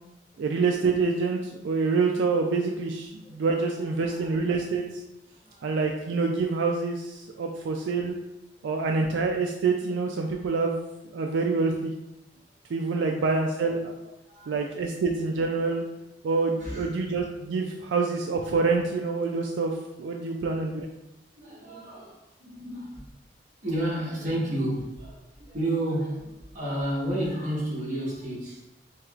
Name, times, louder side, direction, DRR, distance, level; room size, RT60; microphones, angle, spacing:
voice 1, 0.4-5.0 5.6-8.2 8.6-10.9 11.1-11.9 12.7-13.9 14.5-15.8 16.2-20.9, right 4 dB, 80° right, 2 dB, 0.3 m, -26 dB
voice 2, 3.7-4.3 5.4-5.8 7.6-7.7 8.6-9.0 14.0-14.6 16.6-16.9 21.4-23.1 23.6-28.7, right 1 dB, 45° right, -5 dB, 1.2 m, -32 dB
4.4 x 2.9 x 2.4 m, 0.93 s
head